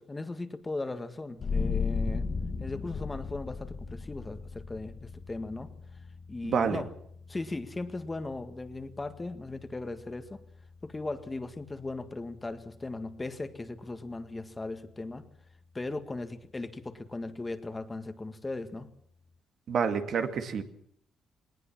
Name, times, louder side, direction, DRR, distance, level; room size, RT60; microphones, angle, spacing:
voice 1, 0.0-2.3 2.6-5.7 6.3-6.9 7.3-10.4 10.8-15.3 15.7-18.9, left 2 dB, 20° left, 9 dB, 1.8 m, -37 dB
sound 1, 1.4-12.7, left 5 dB, 45° left, 1.4 m, -37 dB
voice 2, 6.4-6.8 19.7-20.6, right 6 dB, 65° right, 7 dB, 2.2 m, -28 dB
19.5 x 19.0 x 7.4 m, 0.66 s
cardioid pair, 90°, 0 cm